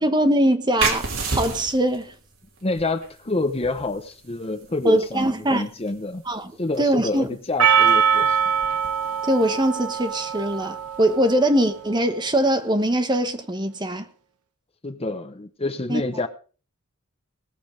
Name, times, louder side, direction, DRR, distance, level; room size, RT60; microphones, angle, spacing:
voice 1, 0.0-2.1 4.8-5.6 6.3-6.5 6.8-7.3 9.3-14.1 15.9-16.0, right 1 dB, 20° right, 1.1 m, -22 dB
sound 1, 0.8-12.1, right 4 dB, 65° right, 3.0 m, -34 dB
voice 2, 2.6-6.2 6.6-8.4 14.8-16.3, left 2 dB, 25° left, 0.9 m, -28 dB
Percussion, 7.6-11.9, right 7 dB, 80° right, 1.2 m, -22 dB
18.0 x 7.0 x 5.2 m
head